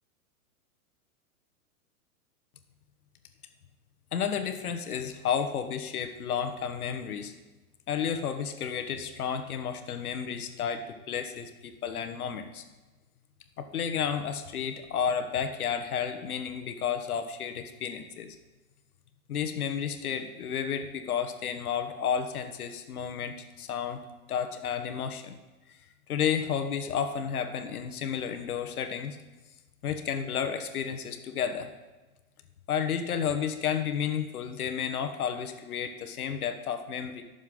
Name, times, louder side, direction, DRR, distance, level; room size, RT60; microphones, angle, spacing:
voice 1, 4.1-7.3 7.9-12.6 13.6-18.4 19.3-24.0 24.3-25.4 26.1-29.2 29.8-31.7 32.7-37.2, left 7 dB, 75° left, 7 dB, 1.4 m, -32 dB
19.5 x 7.1 x 3.9 m, 1.2 s
hypercardioid pair, 130°, 44 cm